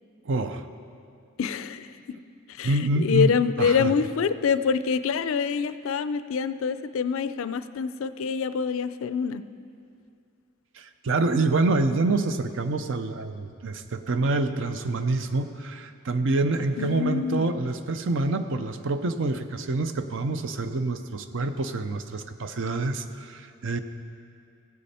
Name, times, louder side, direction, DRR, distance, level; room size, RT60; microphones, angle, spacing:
voice 1, 0.2-0.7 2.6-3.3 3.6-3.9 10.8-23.8, right 2 dB, 65° right, 9 dB, 0.6 m, -26 dB
voice 2, 1.4-2.2 2.5-9.4 16.8-17.6, left 6 dB, 75° left, 13 dB, 0.4 m, -26 dB
15.0 x 8.4 x 4.2 m, 2.4 s
head